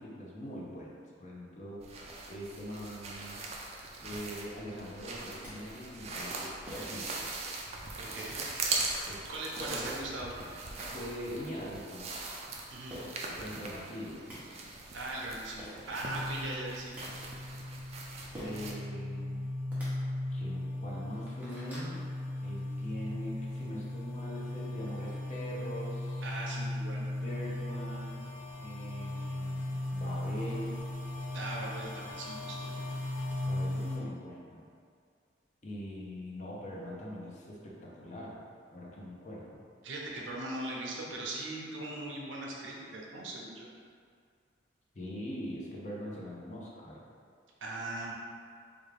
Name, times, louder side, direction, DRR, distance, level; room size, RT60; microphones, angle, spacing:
voice 1, 0.0-1.9 2.3-3.4 4.0-7.3 9.1-9.3 9.7-9.9 10.9-12.1 13.4-14.3 18.3-19.5 20.3-22.0 22.4-26.3 27.0-30.9 33.4-34.7 35.6-38.4 38.7-39.6 44.9-47.0, equal, 40° left, -4 dB, 0.5 m, -42 dB
sound 1, 1.8-18.7, right 3 dB, 35° right, 0.3 m, -41 dB
sound 2, 5.4-5.5 6.7-7.0 8.1-8.2 9.6-9.8 10.5-10.9 12.9-13.1 13.9-14.0 14.2-14.4 15.3-15.4 15.6-15.8 16.6-17.0 18.3-18.7 19.6-19.9 20.5-20.6 21.0-21.9, equal, 10° right, 0.7 m, -45 dB
voice 2, 8.0-8.4 9.3-10.3 12.7-13.0 14.9-16.9 26.2-27.1 31.3-32.7 39.8-43.7 47.6-48.1, right 2 dB, 75° right, -2 dB, 0.6 m, -39 dB
sound 3, 16.0-34.0, left 1 dB, 70° left, 0.8 m, -37 dB
3.5 x 2.4 x 3.3 m, 2.2 s
head